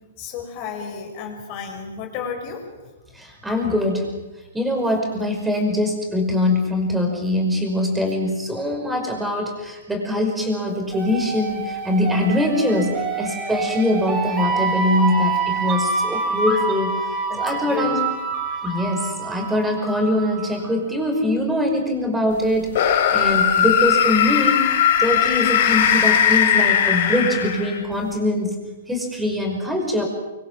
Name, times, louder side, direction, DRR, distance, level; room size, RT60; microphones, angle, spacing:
voice 1, 0.2-2.7 17.3-17.9, left 6 dB, 35° left, 4 dB, 5.9 m, -32 dB
voice 2, 3.2-4.1 4.5-16.9 17.4-18.0 18.6-24.6 25.0-28.6 28.9-30.0, left 1 dB, 5° right, 2 dB, 5.6 m, -23 dB
sound 1, 10.9-20.6, right 4 dB, 20° right, 5.7 m, -26 dB
sound 2, 22.7-27.9, left 9 dB, 55° left, 4.1 m, -18 dB
24.5 x 24.0 x 7.5 m, 1.1 s
hypercardioid pair, 150°, 0 cm